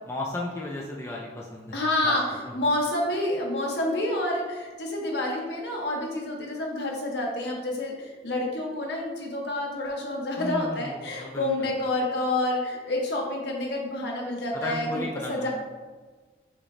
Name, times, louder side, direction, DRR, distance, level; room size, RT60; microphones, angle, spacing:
voice 1, 0.0-1.7 2.0-2.2 2.4-2.5 10.4-11.7 14.5-15.5, left 2 dB, 15° left, -3 dB, 0.4 m, -34 dB
voice 2, 1.7-2.2 2.5-15.5, left 1 dB, 65° left, -1 dB, 1.0 m, -28 dB
6.3 x 3.0 x 2.6 m, 1.4 s
head